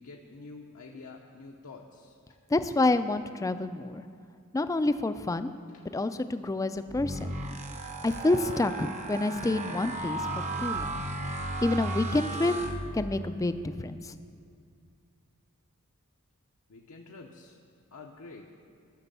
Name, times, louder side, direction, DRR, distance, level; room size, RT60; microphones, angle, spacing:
voice 1, 0.0-2.4 5.7-5.8 16.7-17.6 17.9-18.5, left 3 dB, 80° left, 0 dB, 0.8 m, -48 dB
voice 2, 2.5-4.0 4.5-5.5 5.9-7.3 8.0-10.3 10.6-11.0 11.6-12.5 12.9-14.2, left 2 dB, 15° left, 11 dB, 0.3 m, -28 dB
sound 1, 6.9-13.3, right 2 dB, 30° right, 0.7 m, -35 dB
14.0 x 6.2 x 6.8 m, 2.4 s
head